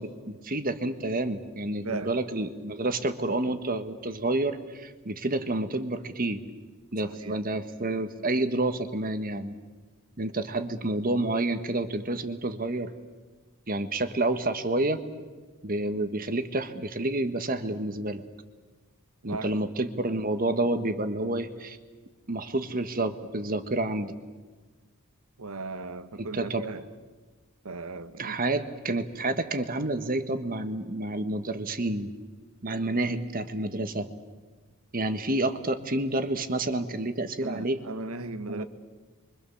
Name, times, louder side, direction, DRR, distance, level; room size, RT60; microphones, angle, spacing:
voice 1, 0.0-6.5 6.9-9.5 10.2-12.9 13.7-15.0 15.6-18.2 19.2-21.8 22.3-24.1 26.2-26.6 28.2-32.1 32.6-34.1 34.9-37.8 38.5-38.6, right 2 dB, 40° right, 1.4 m, -29 dB
voice 2, 7.0-7.4 19.2-19.5 25.4-26.8 27.6-28.4 37.4-38.6, right 3 dB, 80° right, 1.3 m, -37 dB
28.5 x 24.0 x 7.1 m
head